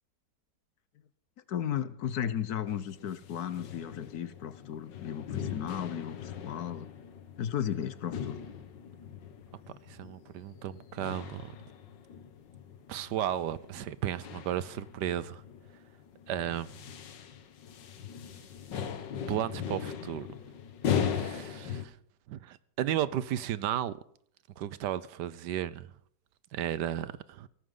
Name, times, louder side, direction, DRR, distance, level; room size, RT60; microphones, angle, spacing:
voice 1, 1.5-6.9 7.4-8.4, left 9 dB, 65° left, 1.2 m, -35 dB
sound 1, 2.7-21.9, left 8 dB, 80° left, 1.8 m, -39 dB
voice 2, 9.9-11.5 12.9-15.4 16.3-16.8 19.3-20.3 21.0-21.9 22.3-24.0 24.6-25.9 26.5-27.5, right 11 dB, 75° right, 1.3 m, -34 dB
18.0 x 14.5 x 3.8 m
omnidirectional pair, 1.9 m